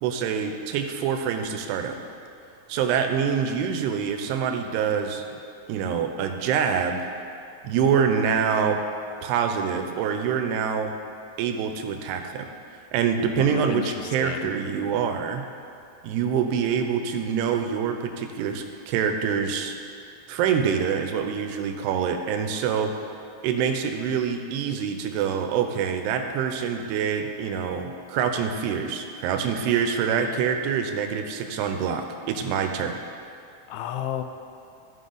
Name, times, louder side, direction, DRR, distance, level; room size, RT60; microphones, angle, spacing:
voice 1, 0.0-2.0 2.7-5.2 5.7-7.1 7.6-8.8 9.2-11.0 11.4-12.5 12.9-15.5 16.0-19.8 20.3-23.0 23.4-33.0, right 7 dB, 85° right, 5 dB, 2.7 m, -25 dB
voice 2, 13.4-14.5 33.7-34.2, left 10 dB, 80° left, 7 dB, 2.2 m, -32 dB
15.0 x 5.6 x 3.9 m, 2.5 s
omnidirectional pair, 4.6 m